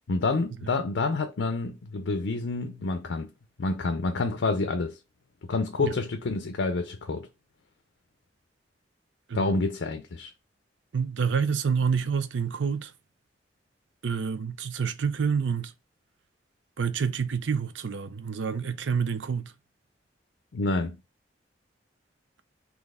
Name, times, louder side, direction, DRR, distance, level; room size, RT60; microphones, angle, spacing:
voice 1, 0.1-3.3 3.6-5.0 5.5-7.3 9.3-10.3 20.5-21.0, left 3 dB, 85° left, 0.5 m, -28 dB
voice 2, 10.9-12.9 14.0-15.7 16.8-19.5, right 6 dB, 85° right, 0.5 m, -28 dB
4.0 x 3.0 x 3.6 m
head